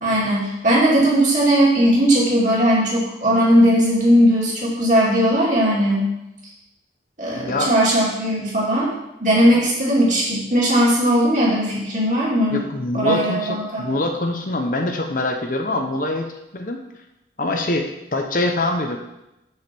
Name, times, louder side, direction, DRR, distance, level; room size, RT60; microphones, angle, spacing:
voice 1, 0.0-6.1 7.2-8.9 9.2-12.6 12.9-14.0, equal, 40° right, -6 dB, 2.6 m, -18 dB
voice 2, 7.3-7.7 12.5-16.3 16.5-16.8 17.4-19.0, left 2 dB, 45° left, 4 dB, 0.8 m, -24 dB
6.4 x 4.8 x 6.8 m, 0.91 s
head